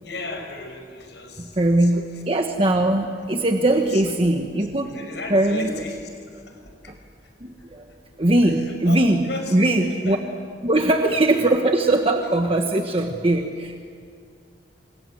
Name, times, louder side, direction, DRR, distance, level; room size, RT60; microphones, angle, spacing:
voice 1, 0.0-2.2 3.6-6.9 8.4-10.2 11.1-11.2 12.2-12.3, left 2 dB, 75° left, 4 dB, 5.7 m, -37 dB
voice 2, 1.4-4.9 5.3-5.7 7.4-7.8 8.2-9.2 9.5-10.2 10.6-13.9, right 1 dB, 30° right, 3 dB, 1.4 m, -20 dB
28.5 x 27.0 x 7.9 m, 2.3 s
head